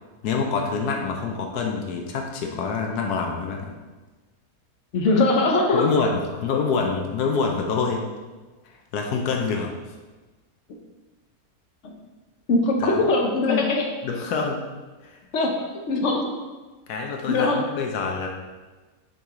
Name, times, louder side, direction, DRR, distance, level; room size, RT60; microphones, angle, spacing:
voice 1, 0.2-3.7 5.7-8.1 8.9-9.7 12.8-13.1 13.5-13.7 14.0-14.6 15.0-15.2 16.9-18.3, left 5 dB, 90° left, 2 dB, 1.3 m, -26 dB
voice 2, 4.9-5.8 11.8-11.9 12.5-13.9 15.3-16.3 17.3-17.6, left 2 dB, 55° left, 2 dB, 1.1 m, -21 dB
6.7 x 4.7 x 3.7 m, 1.3 s
omnidirectional pair, 1.6 m